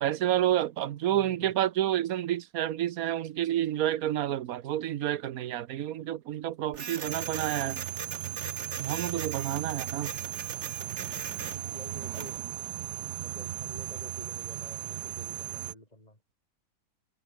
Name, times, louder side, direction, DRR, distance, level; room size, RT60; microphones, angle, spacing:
voice 1, 0.0-7.8 8.8-10.1, right 12 dB, 65° right, 1.2 m, -29 dB
voice 2, 1.1-1.5 9.2-9.6 11.4-12.4 13.2-16.2, left 1 dB, 25° left, 6.2 m, -49 dB
Printer, 6.7-12.4, right 6 dB, 45° right, 1.5 m, -40 dB
sound 1, 7.0-15.7, right 13 dB, 85° right, 1.3 m, -37 dB
omnidirectional pair, 1.7 m